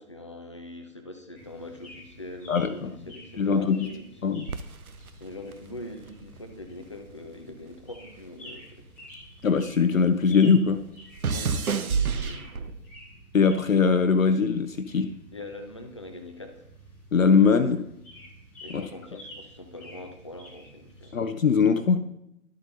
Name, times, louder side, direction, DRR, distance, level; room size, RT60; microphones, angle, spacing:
voice 1, 0.0-4.4 5.2-8.9 11.3-12.8 15.3-16.7 18.6-21.2, left 1 dB, 20° left, 5 dB, 0.5 m, -43 dB
sound 1, 1.3-21.1, equal, 5° left, 0.9 m, -50 dB
voice 2, 2.5-2.9 3.4-3.9 4.2-4.5 9.4-10.8 13.3-15.1 17.1-17.8 18.7-18.8 21.1-22.1, left 5 dB, 65° left, 9 dB, 0.6 m, -21 dB
sound 2, 4.5-7.0 7.3-9.9 10.2-13.0 13.7-14.1, right 5 dB, 70° right, 0.7 m, -31 dB
12.0 x 7.6 x 2.7 m, 0.82 s
figure-of-eight pair, 135°, 44 cm